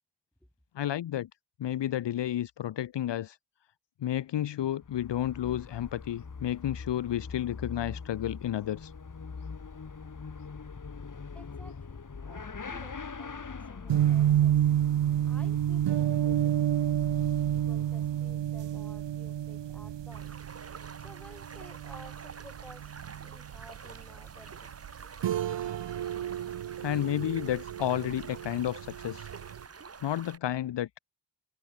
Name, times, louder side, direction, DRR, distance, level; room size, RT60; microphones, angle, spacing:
voice 1, 0.7-1.3 1.6-3.4 4.0-8.9 26.8-29.3 30.0-31.0, left 11 dB, 65° left, 1.1 m, -31 dB
Motorcycle / Accelerating revving vroom, 4.7-18.5, left 5 dB, 40° left, 6.0 m, -43 dB
voice 2, 11.3-14.7 15.2-16.7 17.0-20.4 21.0-24.7, equal, 5° left, 6.8 m, -54 dB
sound 1, 13.9-29.6, right 11 dB, 65° right, 1.2 m, -30 dB
sound 2, 20.1-30.4, right 5 dB, 30° right, 1.5 m, -48 dB
supercardioid pair, 55°, 46 cm